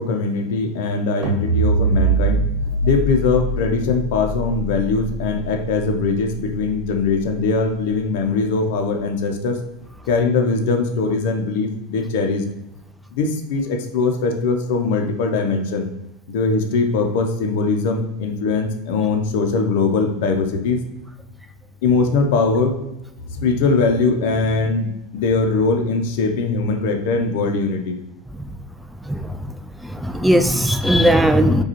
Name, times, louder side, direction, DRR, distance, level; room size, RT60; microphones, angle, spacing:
voice 1, 0.0-2.4 2.8-9.6 10.1-12.4 13.1-15.9 16.3-20.8 21.8-22.7 23.3-28.0, left 4 dB, 65° left, 5 dB, 0.6 m, -21 dB
sound 1, 1.2-7.5, right 3 dB, 55° right, 1.1 m, -23 dB
voice 2, 29.1-29.4 29.8-31.6, equal, 5° right, 8 dB, 0.3 m, -18 dB
4.8 x 2.3 x 2.9 m, 0.94 s
hypercardioid pair, 90°, 0 cm